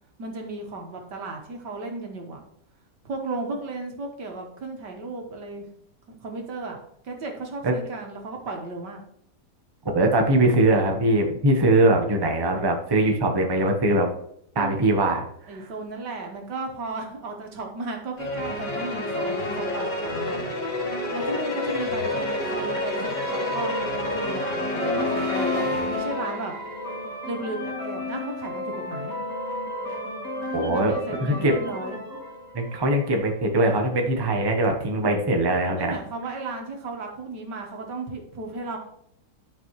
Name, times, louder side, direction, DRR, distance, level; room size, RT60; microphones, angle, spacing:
voice 1, 0.2-2.4 3.0-5.7 6.1-6.8 7.0-9.0 14.6-14.9 15.5-20.6 21.1-26.5 27.3-29.2 30.5-32.0 35.8-38.8, right 3 dB, 80° right, 2 dB, 2.0 m, -34 dB
voice 2, 9.8-14.1 14.5-15.6 30.5-30.9 31.2-31.5 32.5-35.9, right 1 dB, 20° right, 3 dB, 0.8 m, -21 dB
sound 1, 18.2-26.7, left 2 dB, 80° left, 2.6 m, -29 dB
sound 2, 21.6-33.4, left 1 dB, 55° left, 2.7 m, -33 dB
11.0 x 5.3 x 3.1 m, 0.69 s
omnidirectional pair, 1.8 m